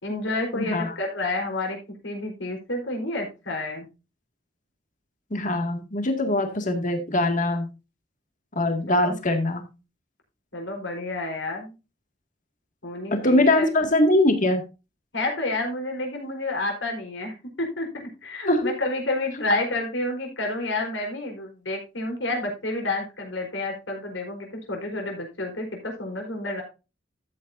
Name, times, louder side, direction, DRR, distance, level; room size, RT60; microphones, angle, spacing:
voice 1, 0.0-1.8 2.0-3.9 8.9-9.2 10.5-11.7 12.8-13.7 15.1-26.6, left 2 dB, 75° left, 2 dB, 4.3 m, -30 dB
voice 2, 0.5-0.9 5.3-7.7 8.6-9.6 13.1-14.6 18.5-18.7, left 1 dB, 45° left, 5 dB, 2.1 m, -22 dB
12.5 x 8.7 x 2.7 m, 0.29 s
head